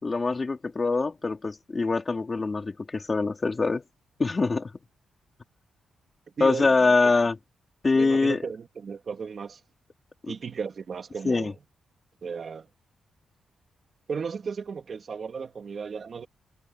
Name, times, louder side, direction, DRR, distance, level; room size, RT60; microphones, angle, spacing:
voice 1, 0.0-3.8 4.2-4.7 6.4-7.4 7.8-8.4 10.2-10.3 11.2-11.5, left 3 dB, 25° left, 3.8 m, -24 dB
voice 2, 6.4-7.0 7.9-9.6 10.3-11.5 12.2-12.7 14.1-16.3, right 5 dB, 40° right, 3.3 m, -35 dB
wide cardioid pair, 170°, 0 cm